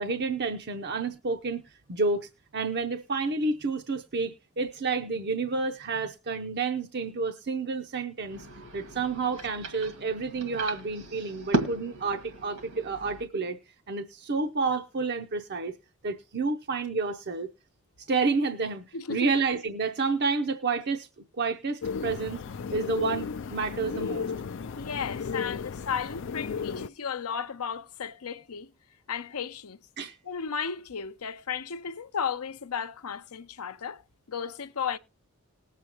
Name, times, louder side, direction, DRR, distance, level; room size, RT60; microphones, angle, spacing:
voice 1, 0.0-8.5 8.7-13.6 13.9-15.7 16.0-17.5 18.0-21.1 21.4-22.4 22.7-24.3 30.0-30.2, right 4 dB, 50° right, 0.7 m, -30 dB
sound 1, 8.2-13.3, right 2 dB, 75° right, 1.9 m, -35 dB
voice 2, 18.9-19.3 24.7-28.7 29.1-29.8 30.3-34.0 34.3-35.0, left 6 dB, 80° left, 0.8 m, -34 dB
sound 2, 21.8-26.9, left 5 dB, 55° left, 0.4 m, -34 dB
19.5 x 7.4 x 3.0 m
head